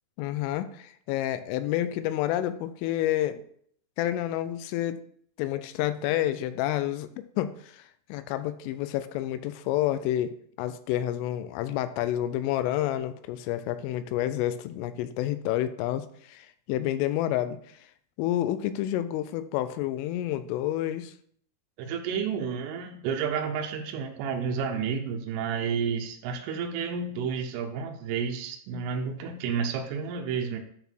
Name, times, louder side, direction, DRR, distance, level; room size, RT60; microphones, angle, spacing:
voice 1, 0.2-3.4 4.0-5.0 5.4-7.1 7.4-10.3 10.6-17.6 18.2-21.1, left 13 dB, 85° left, 12 dB, 3.2 m, -29 dB
voice 2, 21.8-30.6, right 6 dB, 85° right, 3 dB, 3.3 m, -31 dB
10.0 x 4.2 x 4.4 m, 0.62 s
omnidirectional pair, 5.7 m